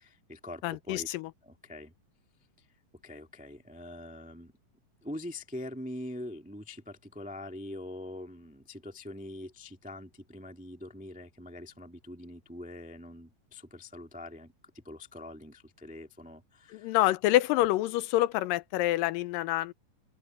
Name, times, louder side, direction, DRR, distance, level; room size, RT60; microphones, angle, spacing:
voice 1, 0.0-1.1 1.4-1.9 3.0-4.5 5.0-16.9, left 1 dB, 5° right, 0.6 m, -43 dB
voice 2, 0.6-1.3 16.7-19.7, left 16 dB, 80° left, 2.2 m, -27 dB
open air
omnidirectional pair, 4.0 m